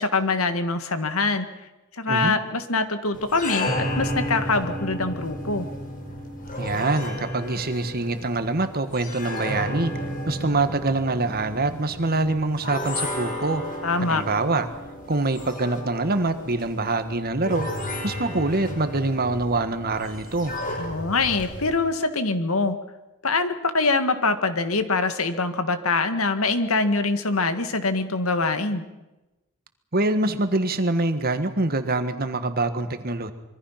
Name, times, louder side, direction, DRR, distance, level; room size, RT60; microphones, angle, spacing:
voice 1, 0.0-1.5 1.9-5.7 13.8-14.2 20.8-22.8 23.2-28.9, left 3 dB, 75° left, 9 dB, 1.8 m, -24 dB
voice 2, 2.1-2.4 6.6-9.9 10.3-13.6 14.0-14.7 15.1-17.7 18.0-20.5 29.9-33.3, right 2 dB, 45° right, 9 dB, 1.6 m, -25 dB
sound 1, 3.1-21.7, left 1 dB, 40° left, 4.9 m, -33 dB
25.5 x 23.0 x 5.9 m, 1.0 s
head